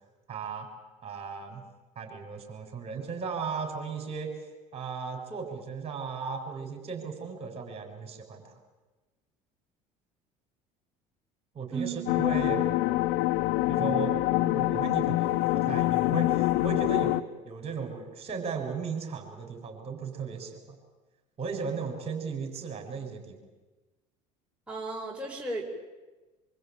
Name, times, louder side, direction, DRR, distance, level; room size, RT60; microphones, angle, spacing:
voice 1, 0.3-0.7 1.0-1.6 2.0-4.5 4.7-8.5 11.5-12.6 13.7-20.6 21.4-23.4, right 5 dB, 35° right, 4 dB, 7.1 m, -36 dB
sound 1, 12.1-17.2, left 17 dB, 75° left, 0.8 m, -25 dB
voice 2, 24.7-25.6, right 3 dB, 5° right, -3 dB, 5.9 m, -34 dB
25.0 x 23.5 x 9.2 m, 1.2 s
hypercardioid pair, 80°, 18 cm